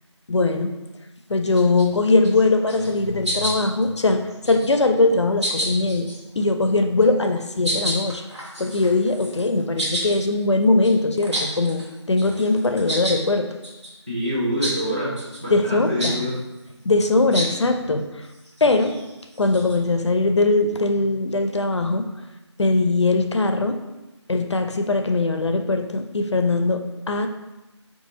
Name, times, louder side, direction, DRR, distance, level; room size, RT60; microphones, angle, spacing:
voice 1, 0.3-0.8 1.3-6.1 6.4-8.2 8.6-13.5 15.5-16.3 16.8-18.1 18.6-19.0 19.4-22.1 22.6-23.8 24.3-27.3, left 2 dB, 70° left, 5 dB, 0.4 m, -21 dB
sound 1, 1.4-1.8 2.2-2.4 2.7-3.0 3.2-3.8 4.3-4.8 5.4-6.2 7.0-7.2 7.6-11.9 12.2-13.2 13.6-13.9 14.6-14.8 15.2-15.4 16.0-16.2 17.3-17.6 18.2-19.8, equal, 65° right, 1.0 m, -29 dB
voice 2, 14.1-15.1 15.4-16.3, equal, 20° right, -8 dB, 0.6 m, -25 dB
3.7 x 2.5 x 2.8 m, 1.0 s
figure-of-eight pair, 170°, 15 cm